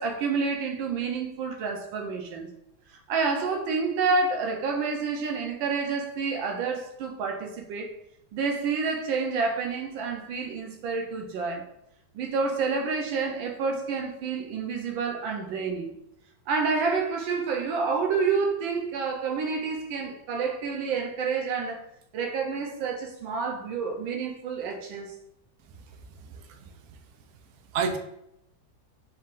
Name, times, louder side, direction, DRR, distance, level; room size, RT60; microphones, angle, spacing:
voice 1, 0.0-2.5 3.1-8.0 8.3-11.7 12.1-15.9 16.5-21.8 22.1-25.1, right 4 dB, 90° right, 1.4 m, -29 dB
voice 2, 26.2-27.0 27.7-28.0, right 5 dB, 70° right, 0.8 m, -31 dB
4.2 x 2.4 x 3.6 m
omnidirectional pair, 2.1 m